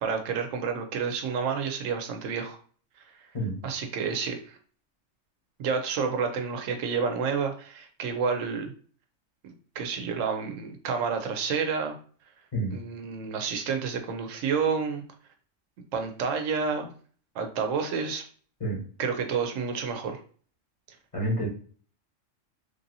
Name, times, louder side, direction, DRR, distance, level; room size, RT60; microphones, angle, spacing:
voice 1, 0.0-2.6 3.6-4.6 5.6-8.7 9.4-12.0 12.7-15.0 15.9-16.9 17.3-18.2 19.0-20.2, right 5 dB, 80° right, 5 dB, 0.9 m, -29 dB
voice 2, 21.1-21.5, right 1 dB, 30° left, -3 dB, 1.0 m, -28 dB
3.3 x 2.6 x 2.6 m, 0.44 s
omnidirectional pair, 1.3 m